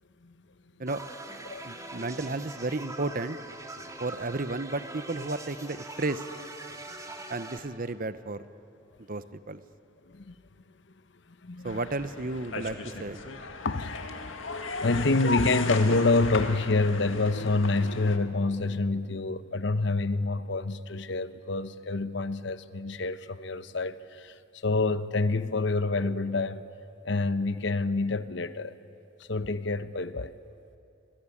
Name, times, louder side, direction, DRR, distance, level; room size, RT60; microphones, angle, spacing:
sound 1, 0.9-7.6, right 2 dB, 15° right, 1.9 m, -42 dB
voice 1, 1.6-3.4 4.0-6.3 7.3-8.4 9.1-9.6 11.6-13.2, right 2 dB, 45° right, 0.9 m, -33 dB
voice 2, 11.3-11.8 13.6-14.1 14.8-26.6 27.0-28.8 29.2-30.3, left 3 dB, 60° left, 0.9 m, -27 dB
sound 2, 11.7-18.2, left 3 dB, 80° left, 2.0 m, -36 dB
25.5 x 21.0 x 9.9 m
head